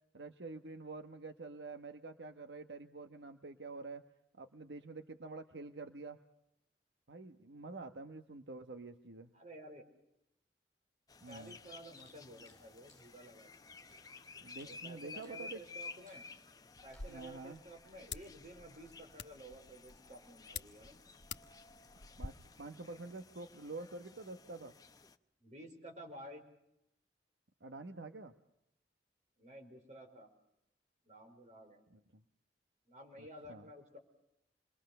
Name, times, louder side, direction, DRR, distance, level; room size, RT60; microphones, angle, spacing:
voice 1, 0.1-4.0 4.3-6.2 7.1-9.3 11.2-11.6 14.4-15.6 17.1-17.6 22.2-24.7 27.6-28.3 31.9-32.2 33.2-33.7, right 3 dB, 80° right, 7 dB, 1.1 m, -48 dB
voice 2, 9.3-9.9 11.3-13.7 14.6-16.2 16.8-21.0 25.4-26.5 29.4-30.3 31.0-31.8 32.9-34.0, right 1 dB, 40° right, 3 dB, 4.8 m, -53 dB
sound 1, 11.1-25.1, left 4 dB, 20° left, 0.8 m, -54 dB
sound 2, 12.0-14.0 14.6-14.8 15.2-15.4 15.9-16.3 16.9-17.1, left 1 dB, 5° left, 8.0 m, -68 dB
sound 3, 16.8-22.3, left 5 dB, 85° left, 1.2 m, -50 dB
27.5 x 22.0 x 6.7 m, 0.81 s
head